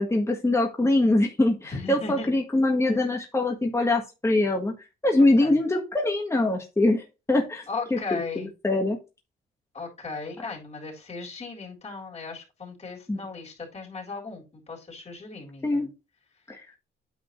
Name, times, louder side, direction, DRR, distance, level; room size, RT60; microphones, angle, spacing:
voice 1, 0.0-4.7 5.0-7.6 7.9-9.0 13.1-13.2 15.6-15.9 16.5-16.6, left 2 dB, 15° left, 2 dB, 1.5 m, -23 dB
voice 2, 1.6-2.3 5.4-5.6 7.7-8.5 9.7-15.9, left 4 dB, 35° left, -1 dB, 3.8 m, -37 dB
9.3 x 5.2 x 3.2 m, 0.27 s
cardioid pair, 90°, 20 cm